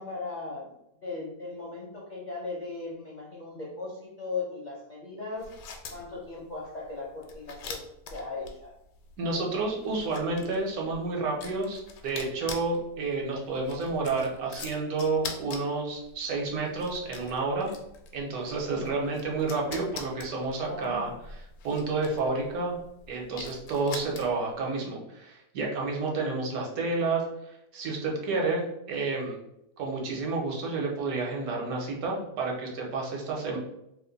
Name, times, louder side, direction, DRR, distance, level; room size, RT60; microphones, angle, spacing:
voice 1, 0.0-5.5 5.9-7.8 8.1-8.7 20.6-21.2, left 3 dB, 50° left, -5 dB, 0.5 m, -38 dB
sound 1, 5.4-24.6, left 4 dB, 75° left, 1.0 m, -45 dB
voice 2, 9.2-17.7 18.1-21.1 21.6-22.8 23.1-27.2 27.7-29.4 29.8-33.6, right 3 dB, 75° right, -1 dB, 1.2 m, -30 dB
2.9 x 2.1 x 3.8 m, 0.81 s
omnidirectional pair, 1.6 m